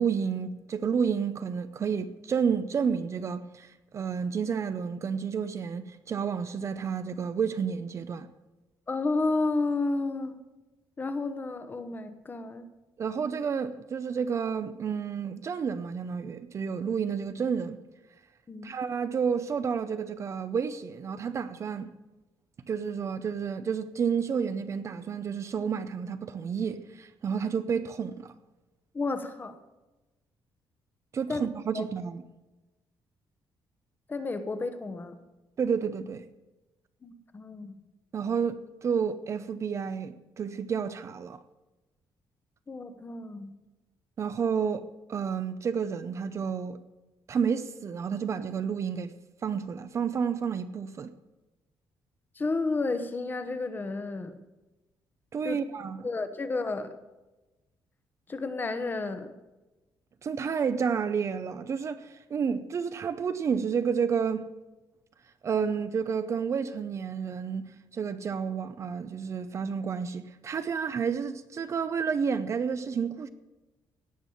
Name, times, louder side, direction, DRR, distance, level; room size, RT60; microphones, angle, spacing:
voice 1, 0.0-8.3 13.0-17.8 18.6-21.9 22.7-28.3 31.1-32.2 35.6-36.2 38.1-41.4 44.2-46.8 47.3-49.1 49.4-51.1 55.3-56.1 60.2-64.5 65.4-73.3, right 6 dB, 35° right, 0.5 m, -30 dB
voice 2, 8.9-10.4 11.0-12.7 18.5-18.8 28.9-29.6 31.3-31.5 31.7-31.8 34.1-35.2 37.0-37.8 42.7-43.5 52.3-54.4 55.4-55.6 56.0-56.9 58.3-59.3, left 3 dB, 25° left, 0.9 m, -31 dB
17.5 x 6.1 x 7.0 m
cardioid pair, 165°, 8 cm